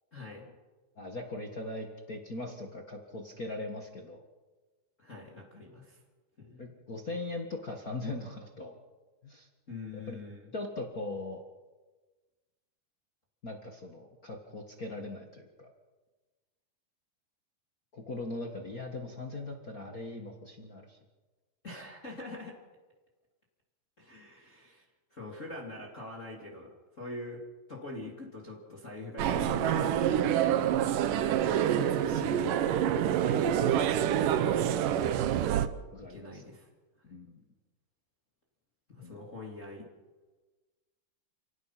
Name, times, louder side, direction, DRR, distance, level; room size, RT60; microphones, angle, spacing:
voice 1, 0.1-0.5 5.0-6.0 6.4-6.6 9.7-10.5 21.6-22.5 24.0-27.4 27.7-30.7 31.4-32.8 33.2-34.4 36.1-36.7 37.1-37.2 38.9-39.8, left 2 dB, 20° left, -1 dB, 2.7 m, -44 dB
voice 2, 1.0-4.2 6.6-8.8 9.2-9.5 9.9-10.2 10.5-11.4 13.4-15.7 17.9-21.0 34.9-35.2 35.9-36.4 37.1-37.4 39.0-39.4, left 2 dB, 55° left, 2 dB, 0.9 m, -40 dB
sound 1, 29.2-35.7, right 10 dB, 70° right, 2.2 m, -27 dB
29.5 x 18.5 x 5.9 m, 1.3 s
omnidirectional pair, 4.5 m